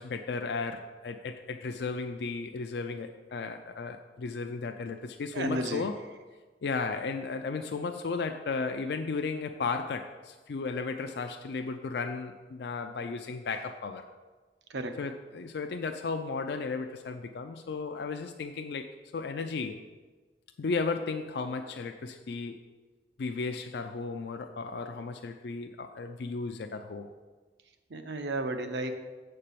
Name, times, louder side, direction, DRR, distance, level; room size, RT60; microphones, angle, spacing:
voice 1, 0.0-6.0 6.6-14.0 15.0-19.8 20.6-22.6 23.2-27.1, left 4 dB, 70° left, 6 dB, 0.4 m, -34 dB
voice 2, 5.3-5.9 14.7-15.0 27.9-28.9, right 2 dB, 80° right, 7 dB, 0.8 m, -33 dB
7.5 x 4.4 x 6.7 m, 1.3 s
head